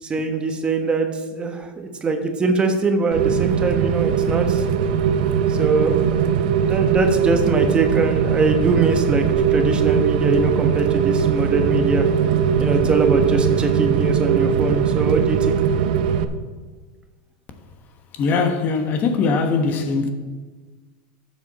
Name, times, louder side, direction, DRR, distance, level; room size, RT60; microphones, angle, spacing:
voice 1, 0.0-4.6 5.5-9.3 9.5-12.1 12.6-15.6, right 3 dB, 20° right, 1.2 m, -22 dB
Rain, 3.1-16.2, right 7 dB, 75° right, 0.8 m, -20 dB
voice 2, 18.1-20.1, left 4 dB, 40° left, 1.2 m, -21 dB
12.5 x 7.6 x 4.2 m
supercardioid pair, 130°, 5 cm